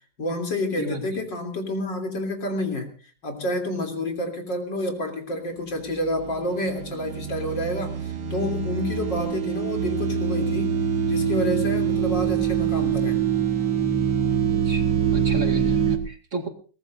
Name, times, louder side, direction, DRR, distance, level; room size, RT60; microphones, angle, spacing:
voice 1, 0.2-2.9 3.2-10.8 11.1-13.2, left 1 dB, 85° left, 4 dB, 4.0 m, -29 dB
sound 1, 6.2-16.0, right 7 dB, 70° right, 2.1 m, -24 dB
voice 2, 14.6-16.5, right 2 dB, 40° right, 3 dB, 2.6 m, -33 dB
23.0 x 18.5 x 2.6 m, 0.39 s
omnidirectional pair, 1.9 m